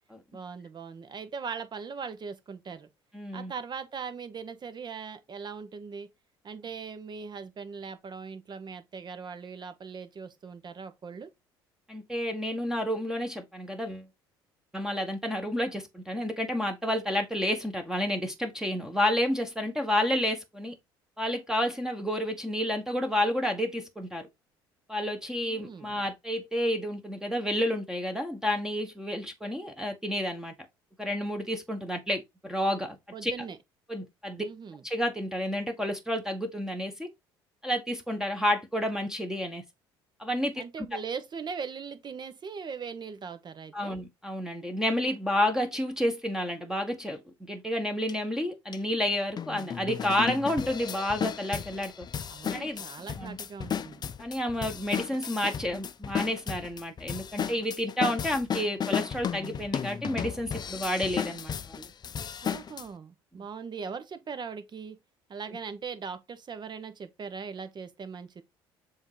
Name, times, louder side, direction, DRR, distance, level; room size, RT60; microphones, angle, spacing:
voice 1, 0.3-2.9 3.3-6.1 6.4-11.3 25.4-25.9 33.1-33.6 34.4-34.8 40.5-44.0 52.3-54.0 62.4-65.0 65.3-68.4, right 5 dB, 35° right, 1.2 m, -40 dB
voice 2, 3.1-3.5 11.9-14.1 14.7-20.7 21.2-24.3 24.9-30.5 31.0-33.3 33.9-34.5 34.8-37.1 37.6-39.6 40.2-40.9 43.7-52.1 52.5-52.8 53.2-53.4 54.2-61.9, left 1 dB, 5° right, 1.2 m, -30 dB
sound 1, 48.1-48.2 48.7-48.8 49.4-62.8, left 7 dB, 35° left, 0.5 m, -34 dB
7.1 x 2.8 x 4.9 m
hypercardioid pair, 60°, 12 cm